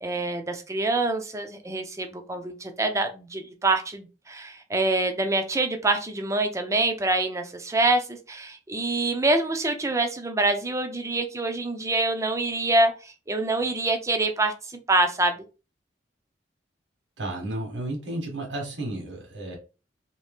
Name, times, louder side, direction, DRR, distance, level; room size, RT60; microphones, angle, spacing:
voice 1, 0.0-15.4, right 2 dB, 15° right, 5 dB, 0.5 m, -25 dB
voice 2, 17.2-19.5, right 1 dB, 75° right, 1 dB, 1.3 m, -32 dB
2.8 x 2.7 x 3.5 m, 0.32 s
head